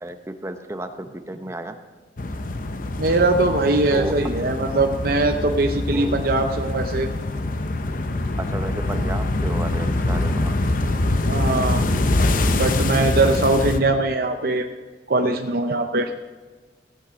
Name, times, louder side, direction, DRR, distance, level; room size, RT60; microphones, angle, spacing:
voice 1, 0.0-1.7 3.9-4.1 4.4-4.5 5.9-6.2 8.4-10.5, right 1 dB, 15° right, 7 dB, 0.7 m, -32 dB
sound 1, 2.2-13.8, left 2 dB, 50° left, 0.7 m, -24 dB
voice 2, 3.0-7.1 11.3-11.9 12.5-14.7 15.1-16.1, right 2 dB, 55° right, 6 dB, 0.7 m, -21 dB
16.5 x 8.9 x 5.1 m, 1.4 s
head